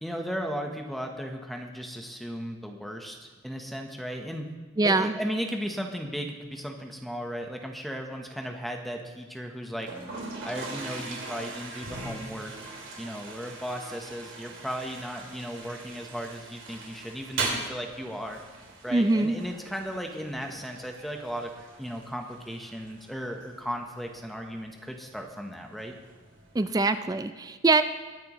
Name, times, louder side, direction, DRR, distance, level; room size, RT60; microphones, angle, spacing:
voice 1, 0.0-4.5 4.8-9.9 10.4-12.5 13.0-18.4 18.8-21.5 21.8-25.9, equal, ahead, 3 dB, 0.9 m, -36 dB
voice 2, 4.8-5.1 18.9-19.3 26.5-27.8, right 2 dB, 15° right, 11 dB, 0.3 m, -23 dB
Toilet flush, 9.8-26.8, right 3 dB, 60° right, 2.7 m, -41 dB
21.5 x 10.0 x 3.1 m, 1.4 s
head